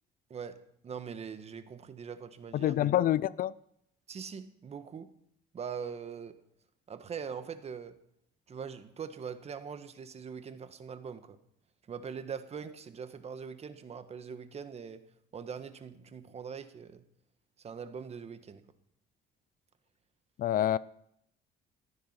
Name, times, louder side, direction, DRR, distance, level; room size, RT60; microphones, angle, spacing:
voice 1, 0.3-2.7 4.1-5.1 5.5-6.4 6.9-8.0 8.5-11.4 11.9-15.1 15.3-17.0 17.6-18.6, right 6 dB, 40° right, 1.5 m, -42 dB
voice 2, 2.5-3.5 20.4-20.8, left 12 dB, 55° left, 0.5 m, -27 dB
15.5 x 13.0 x 5.8 m
cardioid pair, 110°, 17 cm